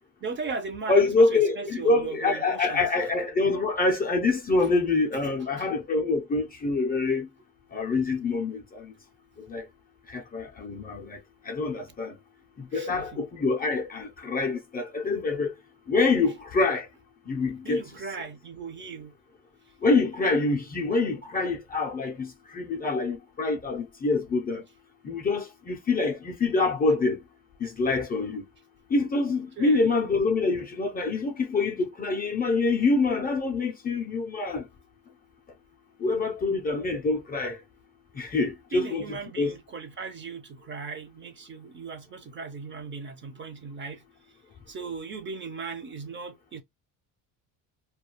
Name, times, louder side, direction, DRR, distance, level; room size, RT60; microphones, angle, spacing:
voice 1, 0.2-2.9 4.6-4.7 5.2-5.7 12.7-13.2 17.6-19.1 29.6-29.9 38.2-38.3 38.7-44.0 44.7-46.6, right 4 dB, 30° right, 0.5 m, -38 dB
voice 2, 0.9-7.3 7.7-8.9 9.4-9.6 10.1-11.2 11.5-12.2 12.7-15.5 15.9-16.9 17.3-17.8 19.8-24.6 25.0-27.2 27.6-28.4 28.9-34.6 36.0-37.6 38.2-39.5, left 3 dB, 25° left, 0.4 m, -26 dB
2.2 x 2.2 x 2.8 m
cardioid pair, 115°, 38 cm